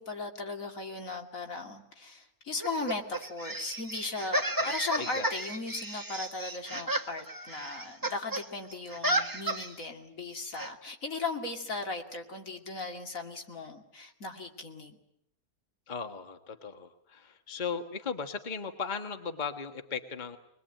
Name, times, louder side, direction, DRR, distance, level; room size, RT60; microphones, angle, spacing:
voice 1, 0.0-15.0, left 3 dB, 70° left, 3 dB, 3.0 m, -37 dB
sound 1, 2.6-8.4 8.7-9.8 10.5-10.7, right 1 dB, 15° right, 1.3 m, -33 dB
voice 2, 4.6-5.3 15.9-20.4, left 5 dB, 35° left, 6 dB, 1.6 m, -37 dB
23.0 x 21.5 x 9.0 m, 0.77 s
omnidirectional pair, 1.5 m